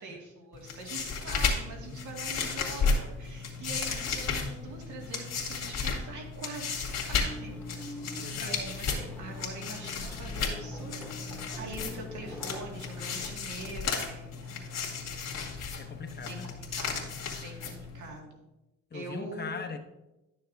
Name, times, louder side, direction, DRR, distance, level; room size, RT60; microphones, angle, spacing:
voice 1, 0.0-6.8 7.1-11.0 11.6-15.0 16.2-16.4 16.7-18.4 18.9-19.6, right 3 dB, 75° right, 1 dB, 2.1 m, -44 dB
sound 1, 0.5-18.1, left 5 dB, 60° left, 2.0 m, -34 dB
sound 2, 7.2-13.3, equal, 5° left, 1.9 m, -45 dB
voice 2, 8.2-8.6 15.8-16.6 18.9-19.8, left 5 dB, 35° left, 6 dB, 0.8 m, -40 dB
11.5 x 6.7 x 2.6 m, 0.97 s
cardioid pair, 90°, 30 cm